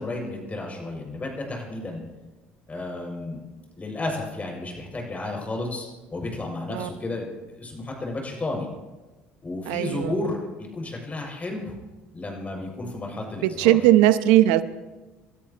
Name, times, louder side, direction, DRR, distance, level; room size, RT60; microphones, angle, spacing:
voice 1, 0.0-2.0 2.7-3.4 3.8-8.7 9.4-11.8 12.1-13.8, left 2 dB, 25° left, 0 dB, 6.5 m, -32 dB
voice 2, 9.7-10.1 13.4-14.6, right 14 dB, 75° right, 13 dB, 0.8 m, -19 dB
29.5 x 13.5 x 3.0 m, 1.2 s
hypercardioid pair, 70°, 6 cm